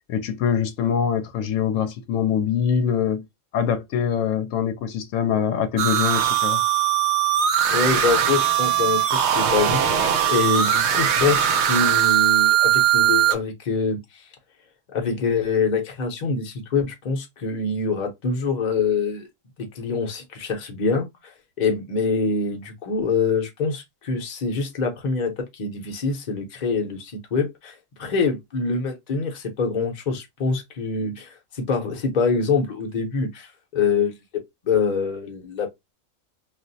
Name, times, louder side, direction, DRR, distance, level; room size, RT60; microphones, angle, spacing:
voice 1, 0.1-3.2 3.5-6.6, left 8 dB, 85° left, 1.0 m, -23 dB
sound 1, 5.8-13.4, right 10 dB, 70° right, 0.9 m, -20 dB
voice 2, 7.7-14.2 14.9-19.3 19.6-21.1 21.6-35.9, left 4 dB, 40° left, 0.8 m, -25 dB
2.4 x 2.1 x 3.8 m
omnidirectional pair, 1.3 m